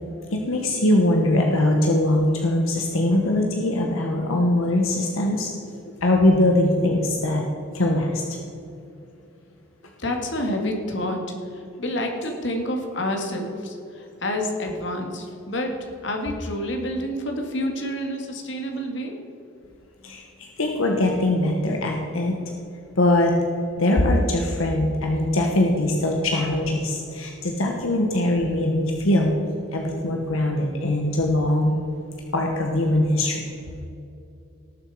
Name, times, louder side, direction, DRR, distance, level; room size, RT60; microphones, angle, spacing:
voice 1, 0.3-5.5 6.0-7.5 7.7-8.2 20.0-22.3 23.0-23.3 23.8-29.3 29.7-31.8 32.3-33.4, left 1 dB, 80° left, 1 dB, 1.3 m, -21 dB
voice 2, 10.0-19.1, left 1 dB, 60° left, 3 dB, 1.9 m, -28 dB
18.5 x 7.1 x 4.9 m, 2.6 s
head